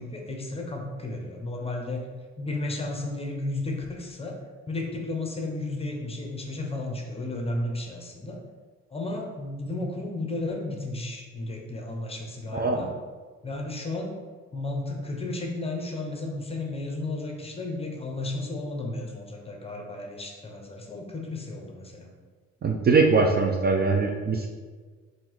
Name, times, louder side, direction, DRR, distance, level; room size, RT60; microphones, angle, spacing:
voice 1, 0.0-2.0 2.4-4.4 4.7-8.4 8.9-12.9 13.4-14.2 14.5-22.1, left 2 dB, 20° left, 1 dB, 0.8 m, -33 dB
voice 2, 12.5-12.9 22.6-24.5, right 4 dB, 35° right, 1 dB, 0.4 m, -22 dB
3.7 x 2.7 x 4.6 m, 1.5 s
cardioid pair, 90°, 30 cm